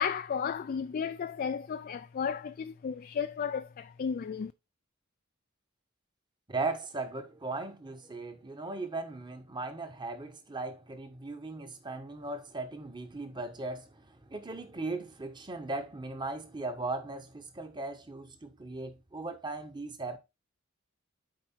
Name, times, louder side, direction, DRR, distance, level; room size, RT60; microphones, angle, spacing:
voice 1, 0.0-4.5, left 7 dB, 45° left, 0.3 m, -33 dB
voice 2, 6.5-20.2, right 3 dB, 20° right, 1.1 m, -38 dB
7.8 x 4.7 x 4.3 m
head